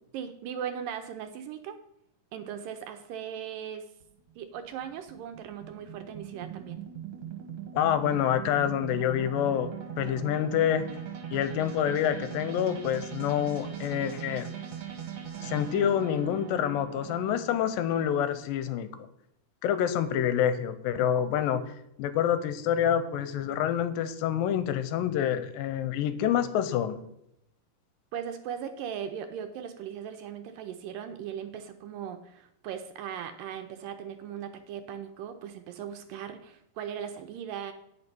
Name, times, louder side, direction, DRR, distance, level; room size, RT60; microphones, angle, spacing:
voice 1, 0.1-1.8 2.3-3.9 4.4-6.8 28.1-37.7, right 8 dB, 80° right, 8 dB, 2.1 m, -38 dB
sound 1, 4.0-18.2, right 9 dB, 60° right, 1.8 m, -40 dB
voice 2, 7.7-10.9 11.3-14.5 15.4-19.1 19.6-21.6 22.0-27.0, left 10 dB, 80° left, 12 dB, 2.2 m, -27 dB
9.7 x 5.3 x 6.0 m, 0.78 s
omnidirectional pair, 4.4 m